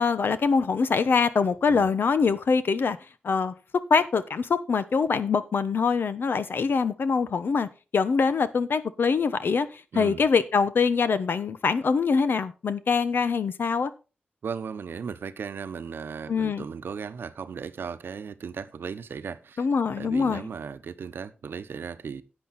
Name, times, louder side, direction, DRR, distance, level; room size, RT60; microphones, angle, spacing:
voice 1, 0.0-3.0 3.2-3.5 3.9-13.9 16.3-16.6 19.6-20.5, left 5 dB, 75° left, 1.0 m, -24 dB
voice 2, 9.9-10.3 14.4-19.7 20.0-22.2, right 6 dB, 85° right, 0.8 m, -36 dB
10.5 x 8.5 x 4.1 m
wide cardioid pair, 85°, 4 cm